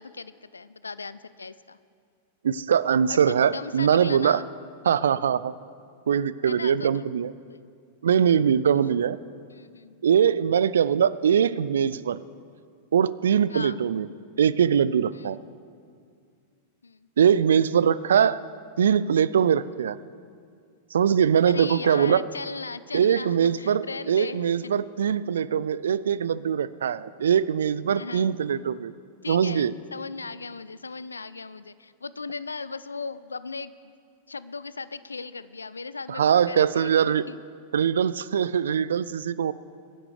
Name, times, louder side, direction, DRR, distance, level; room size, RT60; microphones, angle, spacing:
voice 1, 0.0-1.8 3.1-4.5 6.5-7.0 7.5-7.6 8.7-8.8 9.5-10.0 13.5-13.8 15.1-15.4 16.8-17.1 21.5-24.7 27.9-28.3 29.2-33.7 34.3-37.4, left 4 dB, 85° left, 16 dB, 0.4 m, -37 dB
voice 2, 2.4-4.4 4.8-5.5 6.1-7.3 8.0-9.2 10.0-12.2 12.9-14.1 14.4-15.4 17.2-18.4 18.8-20.0 20.9-22.2 22.9-28.9 29.3-29.7 36.1-37.2 37.7-39.5, right 8 dB, 70° right, 18 dB, 0.3 m, -22 dB
22.0 x 10.5 x 3.4 m, 2.2 s
figure-of-eight pair, 95°, 0 cm